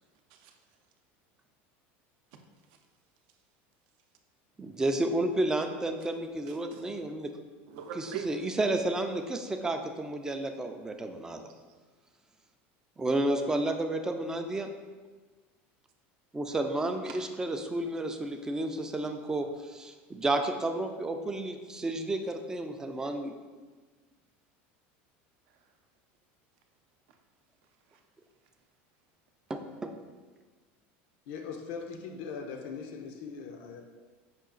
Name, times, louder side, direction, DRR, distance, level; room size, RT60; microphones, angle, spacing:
voice 1, 4.6-7.3 8.3-11.4 13.0-14.7 16.3-23.4 29.5-29.9, right 2 dB, 10° right, 6 dB, 0.3 m, -31 dB
voice 2, 6.5-6.8 7.7-8.4 11.5-11.6 17.1-17.2 23.0-23.2 25.5-25.7 27.1-27.2 27.6-28.0, right 8 dB, 65° right, 5 dB, 0.5 m, -44 dB
voice 3, 31.3-33.8, left 5 dB, 70° left, 4 dB, 0.5 m, -40 dB
5.7 x 2.4 x 3.8 m, 1.3 s
supercardioid pair, 140°, 6 cm